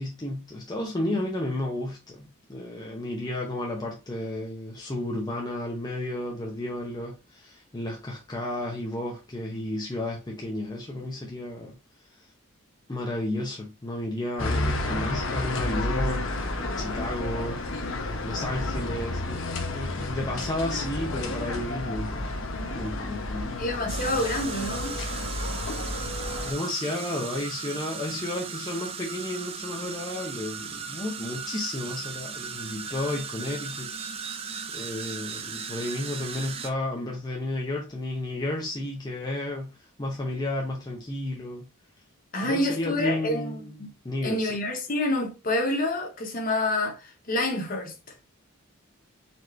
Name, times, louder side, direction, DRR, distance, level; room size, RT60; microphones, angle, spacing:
voice 1, 0.0-11.7 12.2-12.3 12.9-16.3 16.6-19.4 19.7-22.3 22.7-23.6 26.4-34.5 34.7-41.6 42.4-43.8 44.0-44.5, left 1 dB, 20° left, 0.6 m, -32 dB
sound 1, 14.4-26.5, left 2 dB, 65° left, 0.8 m, -31 dB
voice 2, 23.6-25.0 42.3-43.9 44.2-47.0 47.3-47.9, left 1 dB, 40° left, 0.9 m, -27 dB
sound 2, 23.9-36.7, right 6 dB, 25° right, 0.4 m, -37 dB
4.2 x 3.0 x 3.2 m
head